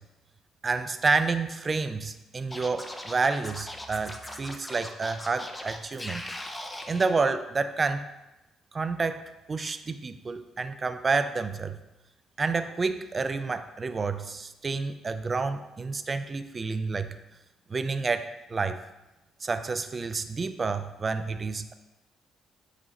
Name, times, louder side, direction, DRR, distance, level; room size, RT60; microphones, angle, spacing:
voice 1, 0.6-6.3 6.9-8.1 8.7-9.2 9.5-11.8 12.4-17.2 17.7-18.8 19.4-21.7, right 4 dB, 35° right, 10 dB, 0.3 m, -29 dB
Scratching (performance technique), 2.5-7.0, left 1 dB, 15° left, 0.5 m, -39 dB
3.8 x 3.0 x 3.9 m, 1.0 s
hypercardioid pair, 45°, 0 cm